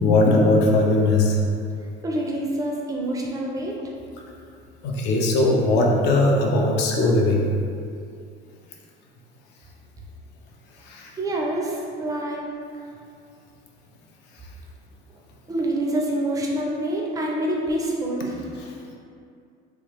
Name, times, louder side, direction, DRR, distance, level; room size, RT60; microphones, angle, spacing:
voice 1, 0.0-1.4 4.8-7.5 10.7-11.2 18.6-18.7, left 2 dB, 55° left, 0 dB, 0.5 m, -19 dB
voice 2, 2.0-3.8 11.2-12.5 12.7-12.8 15.5-18.4, right 1 dB, 15° right, -2 dB, 0.4 m, -26 dB
3.4 x 2.3 x 3.0 m, 2.4 s
cardioid pair, 140°, 21 cm